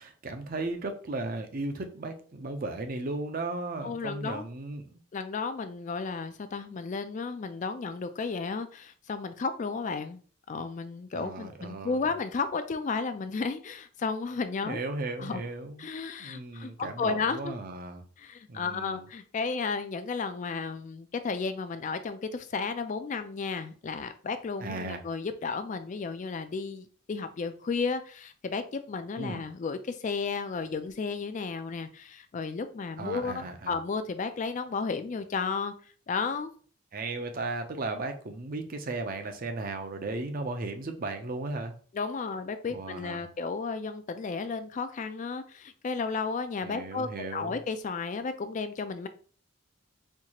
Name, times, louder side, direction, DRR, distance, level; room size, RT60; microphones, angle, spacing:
voice 1, 0.0-5.0 11.1-12.1 14.6-15.9 16.2-18.0 18.5-19.0 24.6-25.0 29.2-29.4 33.0-33.7 36.9-41.7 42.7-43.3 46.6-47.6, right 2 dB, 45° right, 6 dB, 0.6 m, -36 dB
voice 2, 3.8-4.5 5.1-10.2 10.5-14.8 15.2-15.4 15.8-17.5 18.2-35.7 36.1-36.5 41.9-49.1, left 4 dB, 35° left, 10 dB, 0.3 m, -33 dB
4.4 x 2.4 x 2.9 m, 0.43 s
head